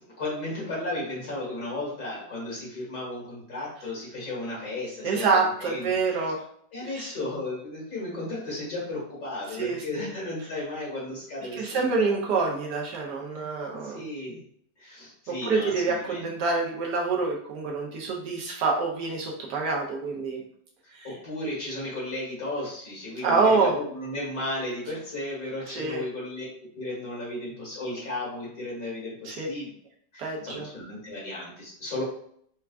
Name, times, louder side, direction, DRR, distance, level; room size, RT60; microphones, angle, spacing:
voice 1, 0.2-6.3 6.7-12.1 13.3-13.4 13.8-14.4 14.8-16.2 21.0-26.5 26.8-29.7 30.1-32.0, left 1 dB, 60° left, -5 dB, 2.0 m, -34 dB
voice 2, 5.0-6.4 6.8-7.1 9.6-10.1 11.6-14.0 15.4-20.4 20.9-21.1 23.2-23.7 25.7-26.0 29.2-29.5 30.2-30.7, right 4 dB, 80° right, 0 dB, 1.4 m, -26 dB
4.5 x 2.3 x 2.4 m, 0.65 s
omnidirectional pair, 1.8 m